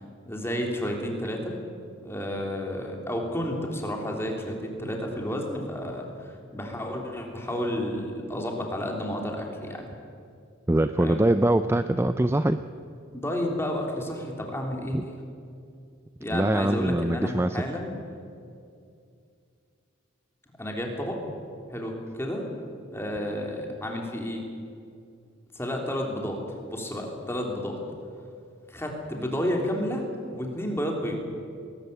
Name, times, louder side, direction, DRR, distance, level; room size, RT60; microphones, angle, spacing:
voice 1, 0.3-1.6 2.0-9.9 11.0-11.3 13.1-15.2 16.2-18.0 20.6-21.2 21.7-22.5 22.9-24.4 25.5-26.4 26.7-27.8 28.7-30.0 30.3-31.2, equal, 10° left, 1 dB, 3.4 m, -31 dB
voice 2, 10.7-12.6 14.9-15.0 16.3-17.6, right 1 dB, 10° right, 10 dB, 0.4 m, -23 dB
20.5 x 19.0 x 8.1 m, 2.4 s
head